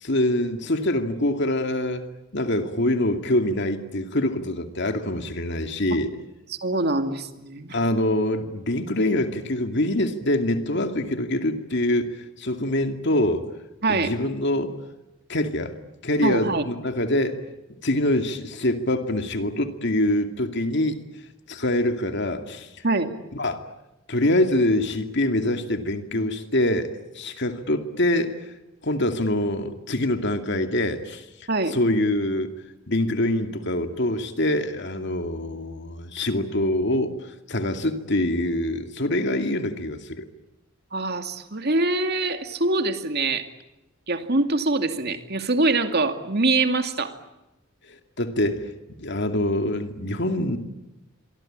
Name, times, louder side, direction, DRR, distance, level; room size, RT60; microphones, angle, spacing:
voice 1, 0.0-6.1 7.7-13.4 13.9-14.8 15.3-15.7 16.0-17.4 17.8-21.0 21.5-22.7 23.3-23.6 24.1-28.4 28.8-31.2 31.7-32.5 32.9-37.1 37.5-40.3 47.9-48.7 49.0-50.6, left 1 dB, 60° left, 7 dB, 2.4 m, -24 dB
voice 2, 6.5-7.8 13.8-14.2 16.2-16.6 22.8-23.1 31.5-31.8 40.9-43.5 44.1-47.1, right 2 dB, 50° right, 7 dB, 2.5 m, -24 dB
27.0 x 24.0 x 8.9 m, 0.96 s
head